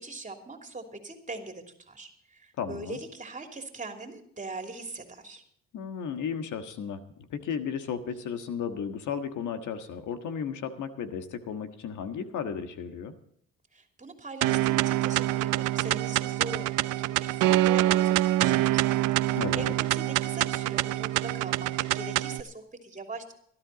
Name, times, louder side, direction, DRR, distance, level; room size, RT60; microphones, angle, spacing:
voice 1, 0.0-5.4 13.7-18.8 19.2-19.6 19.9-21.7 21.9-23.3, right 3 dB, 25° right, 4 dB, 3.0 m, -41 dB
voice 2, 2.6-3.0 5.7-13.1 19.3-19.7, left 7 dB, 80° left, 8 dB, 1.6 m, -34 dB
sound 1, 14.4-22.4, right 15 dB, 90° right, 0.6 m, -25 dB
18.5 x 12.5 x 4.0 m, 0.65 s
cardioid pair, 90°, 30 cm